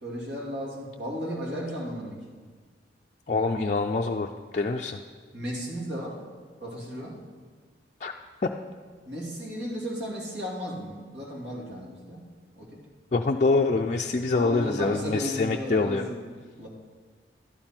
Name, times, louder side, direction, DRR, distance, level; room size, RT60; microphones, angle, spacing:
voice 1, 0.0-2.2 5.3-6.2 6.6-7.2 9.1-12.2 12.6-12.8 14.2-16.2 16.6-16.7, equal, 70° right, -3 dB, 2.6 m, -34 dB
voice 2, 3.3-4.3 4.5-5.0 8.0-8.1 13.1-16.1, left 3 dB, 40° left, 1 dB, 0.4 m, -25 dB
12.0 x 10.5 x 4.4 m, 1.5 s
head